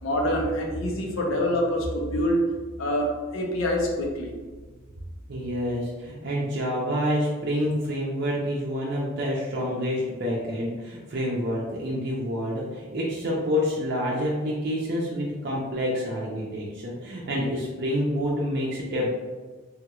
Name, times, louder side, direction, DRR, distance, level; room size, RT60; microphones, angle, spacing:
voice 1, 0.0-2.4 2.8-4.3, equal, 80° left, 0 dB, 0.6 m, -26 dB
voice 2, 5.3-19.1, equal, 55° right, -4 dB, 0.5 m, -28 dB
3.4 x 2.9 x 2.3 m, 1.4 s
head